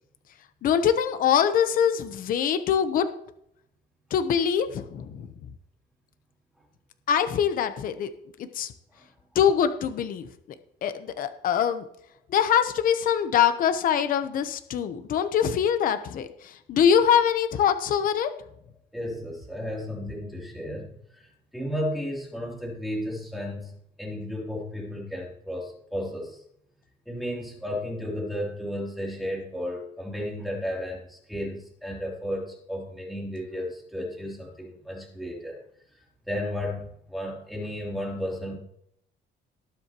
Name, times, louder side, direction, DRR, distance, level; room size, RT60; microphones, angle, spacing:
voice 1, 0.6-3.1 4.1-5.3 7.1-8.1 8.4-8.7 9.3-10.3 10.8-11.8 12.3-18.3, left 8 dB, 50° left, 10 dB, 0.9 m, -23 dB
voice 2, 18.9-21.2 21.5-23.7 24.0-26.4 27.0-35.6 36.3-38.6, equal, ahead, -4 dB, 3.2 m, -33 dB
19.0 x 7.7 x 3.0 m, 0.73 s
cardioid pair, 165°, 18 cm